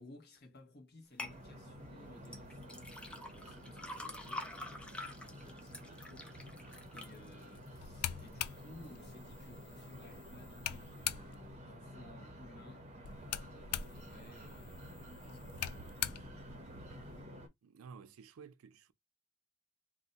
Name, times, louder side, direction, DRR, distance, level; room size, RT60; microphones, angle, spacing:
voice 1, 0.0-6.4 6.8-12.9 13.2-16.5, left 2 dB, 50° left, 1.0 m, -58 dB
sound 1, 1.2-1.4 2.3-8.4 8.8-9.4 9.8-9.9, left 1 dB, 5° left, 0.4 m, -47 dB
sound 2, 1.2-17.5, equal, 30° right, 0.7 m, -51 dB
sound 3, 7.8-11.6 13.0-17.2, left 11 dB, 80° left, 0.3 m, -43 dB
voice 2, 17.6-18.9, right 6 dB, 70° right, 0.4 m, -53 dB
2.6 x 2.1 x 3.8 m
head